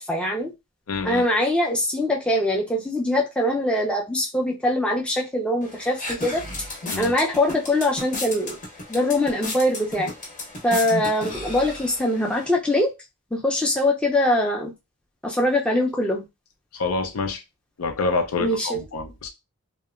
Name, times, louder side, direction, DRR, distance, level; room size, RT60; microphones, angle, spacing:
voice 1, 0.1-0.5 1.0-6.4 6.7-8.6 8.9-10.1 10.6-12.9 13.3-14.7 15.2-16.2 18.4-18.8, left 1 dB, 5° left, 0.4 m, -23 dB
voice 2, 0.9-1.2 6.9-7.1 16.7-17.4 17.8-19.3, left 3 dB, 85° left, 0.5 m, -27 dB
sound 1, 5.6-12.5, left 2 dB, 35° left, 0.8 m, -34 dB
2.8 x 2.1 x 2.4 m
head